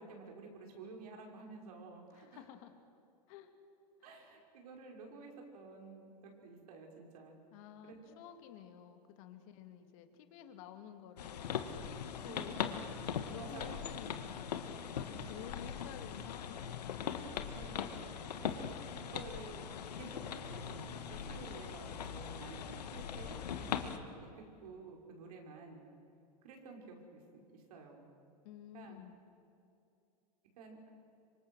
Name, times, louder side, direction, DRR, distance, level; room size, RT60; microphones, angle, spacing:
voice 1, 0.0-2.4 4.0-6.1 6.4-7.4 7.8-8.2 12.2-12.7 13.3-13.9 15.1-15.5 17.5-18.1 18.4-18.7 19.0-19.7 20.0-25.9 26.4-27.2 27.5-28.1 28.7-29.0 30.6-31.0, right 4 dB, 70° right, 1 dB, 5.7 m, -52 dB
voice 2, 2.1-2.8 3.3-3.5 4.0-4.2 7.5-11.6 11.9-17.1 28.4-29.1, left 10 dB, 55° left, 7 dB, 2.5 m, -52 dB
sound 1, 11.2-24.0, left 7 dB, 80° left, 1.7 m, -41 dB
26.0 x 25.0 x 6.4 m, 2.6 s
hypercardioid pair, 105°, 20 cm